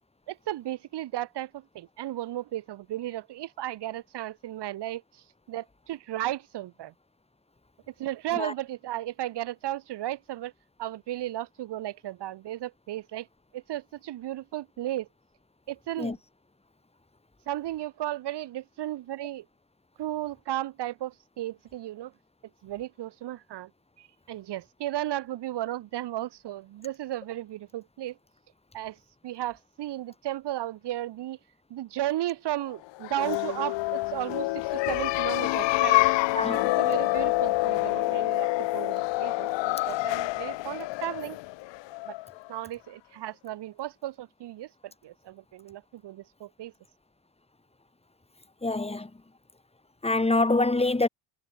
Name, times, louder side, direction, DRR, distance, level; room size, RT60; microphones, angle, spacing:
voice 1, 0.3-6.9 7.9-10.5 10.8-13.3 13.5-15.1 15.7-16.2 17.5-19.4 20.0-22.1 22.6-23.7 24.0-28.2 28.7-29.0 29.2-31.4 31.7-36.0 36.5-41.4 42.1-42.2 42.5-46.7, right 13 dB, 60° right, 5.1 m, -35 dB
sound 1, 33.0-42.5, left 20 dB, 65° left, 3.0 m, -27 dB
voice 2, 36.3-36.7 48.6-49.1 50.0-51.1, left 2 dB, 15° left, 4.4 m, -25 dB
hypercardioid pair, 65°, 46 cm